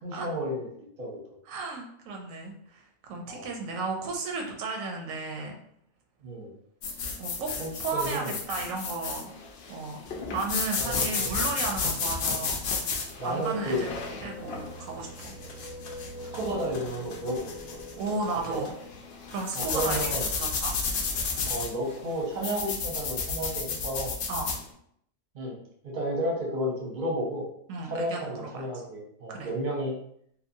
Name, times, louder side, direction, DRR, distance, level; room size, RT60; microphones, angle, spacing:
voice 1, 0.0-0.7 1.0-1.1 3.3-3.5 6.2-6.5 7.6-8.4 10.8-11.4 13.2-13.8 15.5-15.6 16.2-18.0 18.5-18.6 19.5-20.3 21.5-24.1 25.3-25.6 25.8-27.5 27.8-29.9, equal, 45° right, -2 dB, 0.7 m, -32 dB
voice 2, 1.5-2.8 3.1-5.6 7.2-7.5 7.8-9.4 9.7-10.0 10.3-12.9 13.2-13.9 14.2-15.3 18.0-18.7 19.3-20.1 20.4-20.8 24.3-24.5 27.7-28.5 29.3-29.5, right 3 dB, 90° right, 1 dB, 1.0 m, -34 dB
sound 1, 6.8-24.6, left 4 dB, 65° left, 0.6 m, -33 dB
sound 2, 13.6-19.8, equal, 85° left, 1.0 m, -45 dB
2.8 x 2.2 x 2.6 m, 0.70 s
omnidirectional pair, 1.4 m